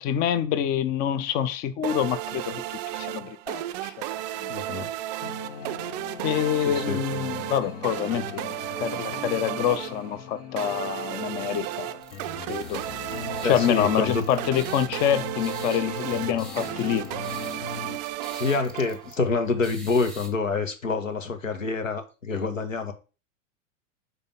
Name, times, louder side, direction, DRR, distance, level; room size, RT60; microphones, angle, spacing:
voice 1, 0.0-4.1 4.4-4.5 6.2-12.0 12.5-12.8 13.4-17.1, left 9 dB, 25° left, 0.5 m, -26 dB
sound 1, 1.8-19.3, right 15 dB, 35° right, 0.4 m, -34 dB
voice 2, 4.5-4.9 6.6-7.0 13.4-14.2 18.3-22.9, left 4 dB, 85° left, 1.5 m, -27 dB
sound 2, 5.2-18.0, left 7 dB, 45° left, 0.8 m, -40 dB
sound 3, 12.0-20.3, right 1 dB, ahead, 1.3 m, -47 dB
5.3 x 4.2 x 5.3 m
figure-of-eight pair, 100°, 38 cm